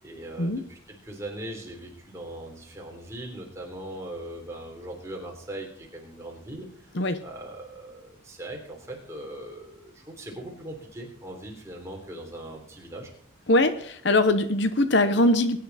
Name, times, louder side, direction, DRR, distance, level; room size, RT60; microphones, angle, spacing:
voice 1, 0.0-6.7 7.2-13.1, right 1 dB, 15° right, -1 dB, 3.4 m, -40 dB
voice 2, 13.5-15.6, left 2 dB, 60° left, 10 dB, 0.9 m, -22 dB
21.0 x 10.5 x 4.2 m, 0.63 s
head